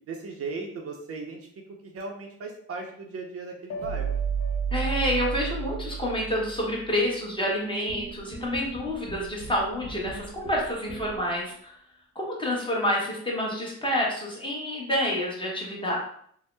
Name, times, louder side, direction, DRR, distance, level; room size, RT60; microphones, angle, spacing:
voice 1, 0.1-1.4 1.8-4.2, right 4 dB, 50° right, 2 dB, 0.5 m, -37 dB
sound 1, 3.7-6.9, right 6 dB, 70° left, 0.6 m, -30 dB
voice 2, 4.7-11.7 12.1-16.0, equal, 15° left, -3 dB, 1.0 m, -28 dB
sound 2, 7.9-11.4, right 2 dB, 45° left, 1.1 m, -42 dB
2.7 x 2.0 x 3.3 m, 0.64 s
cardioid pair, 90°, 30 cm